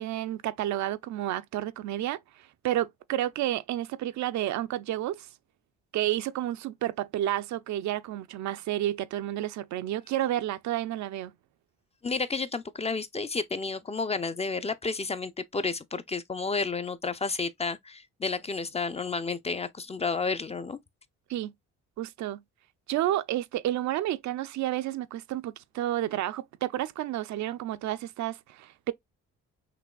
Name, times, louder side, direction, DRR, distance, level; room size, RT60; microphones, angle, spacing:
voice 1, 0.0-2.2 2.6-5.3 5.9-11.3 21.3-21.5 22.0-22.4 22.9-28.9, right 13 dB, 70° right, 0.4 m, -30 dB
voice 2, 12.0-20.8, left 4 dB, 20° left, 0.4 m, -31 dB
5.9 x 2.8 x 2.2 m
cardioid pair, 90°, 30 cm